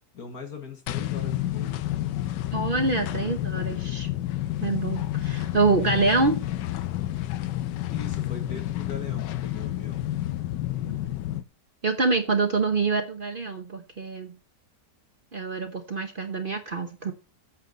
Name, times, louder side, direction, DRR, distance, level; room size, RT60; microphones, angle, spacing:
voice 1, 0.1-1.8 7.9-10.0, left 5 dB, 60° left, 1.9 m, -40 dB
sound 1, 0.9-11.4, left 14 dB, 80° left, 1.3 m, -30 dB
voice 2, 2.5-4.1 4.6-6.4 10.9-11.0 11.8-14.3 15.3-17.1, right 3 dB, 40° right, 0.9 m, -26 dB
8.6 x 7.4 x 4.0 m
omnidirectional pair, 1.9 m